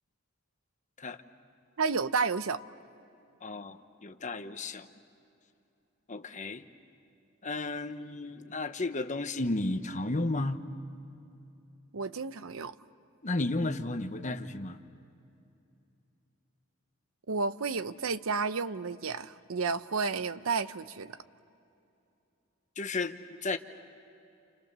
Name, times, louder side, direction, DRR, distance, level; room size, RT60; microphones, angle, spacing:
voice 1, 1.8-2.6 11.9-12.7 17.3-21.2, right 4 dB, 85° right, 13 dB, 0.8 m, -31 dB
voice 2, 3.4-4.9 6.1-6.7 7.4-10.6 13.2-14.8 22.8-23.6, left 2 dB, 35° left, 8 dB, 1.0 m, -33 dB
30.0 x 28.5 x 6.8 m, 2.7 s
head